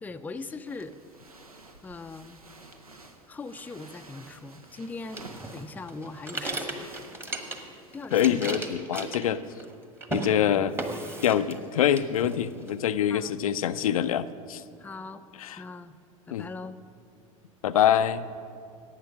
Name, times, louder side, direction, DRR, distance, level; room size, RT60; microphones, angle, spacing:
voice 1, 0.0-1.0 1.8-2.4 3.3-6.9 7.9-8.6 13.1-13.3 14.8-15.2 15.6-15.9 16.3-16.8, left 3 dB, 10° left, 10 dB, 0.4 m, -40 dB
sound 1, 0.7-8.5, right 2 dB, 85° right, 0.9 m, -50 dB
sound 2, 5.2-7.8 8.0-9.7 10.0-10.3 10.8-11.7 12.0-12.7, right 2 dB, 15° right, 1.2 m, -35 dB
voice 2, 8.1-9.4 10.1-10.8 11.2-14.6 15.4-15.6 16.3-16.4 17.6-18.2, left 10 dB, 70° left, 12 dB, 0.4 m, -25 dB
11.0 x 8.7 x 6.3 m, 2.3 s
figure-of-eight pair, 75°, 18 cm